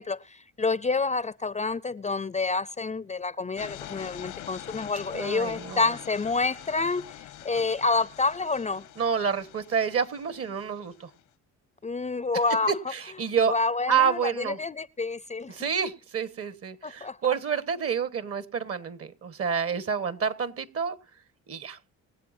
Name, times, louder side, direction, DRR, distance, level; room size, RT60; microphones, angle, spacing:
voice 1, 0.0-7.0 7.4-8.8 11.8-12.7 13.5-15.7 16.8-17.2, left 3 dB, 25° left, 0.5 m, -28 dB
sound 1, 3.6-11.2, left 13 dB, 90° left, 1.0 m, -44 dB
voice 2, 5.1-5.9 9.0-11.1 12.7-13.5 13.9-14.6 15.5-21.0 21.5-21.8, right 7 dB, 50° right, 1.5 m, -28 dB
24.5 x 8.2 x 2.7 m
cardioid pair, 90°, 30 cm